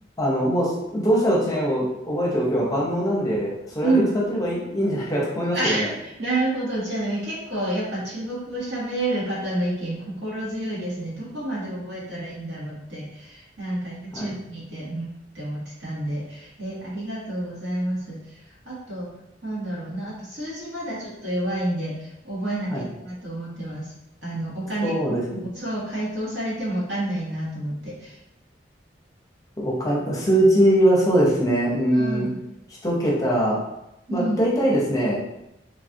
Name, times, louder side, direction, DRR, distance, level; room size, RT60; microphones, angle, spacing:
voice 1, 0.2-3.9 4.3-5.9 14.2-14.3 22.7-22.8 24.8-25.4 29.6-32.3 32.8-33.6 34.1-35.2, right 1 dB, 20° left, -5 dB, 0.7 m, -22 dB
voice 2, 5.5-18.4 18.6-19.1 19.4-23.8 24.2-25.0 25.5-28.2 31.9-32.4 34.1-34.4, right 1 dB, 85° right, -8 dB, 1.5 m, -29 dB
3.1 x 2.3 x 2.6 m, 0.86 s
head